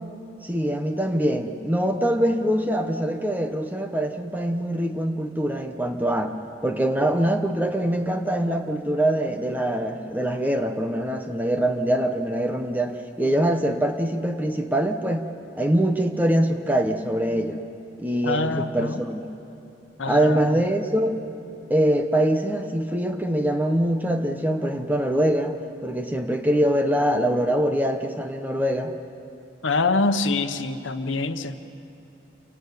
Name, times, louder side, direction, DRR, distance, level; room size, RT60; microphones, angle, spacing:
voice 1, 0.4-6.3 6.6-15.3 15.6-17.6 18.0-19.3 20.1-21.2 21.7-25.6 25.8-28.9, right 1 dB, 10° right, 5 dB, 1.0 m, -23 dB
voice 2, 18.2-19.0 20.0-20.6 29.6-31.6, left 3 dB, 90° left, 9 dB, 1.0 m, -25 dB
29.5 x 12.5 x 9.4 m, 2.8 s
head